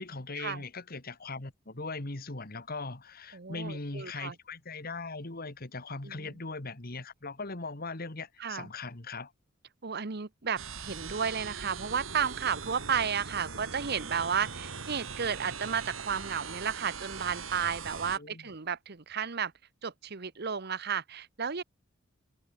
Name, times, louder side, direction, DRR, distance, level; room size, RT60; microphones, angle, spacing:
voice 1, 0.0-9.3 18.1-18.5, left 3 dB, 50° left, 1.9 m, -39 dB
voice 2, 3.3-4.3 6.0-6.3 8.4-8.7 9.8-19.5 19.8-21.6, right 7 dB, 55° right, 1.0 m, -33 dB
sound 1, 10.6-18.2, right 5 dB, 85° right, 3.5 m, -41 dB
head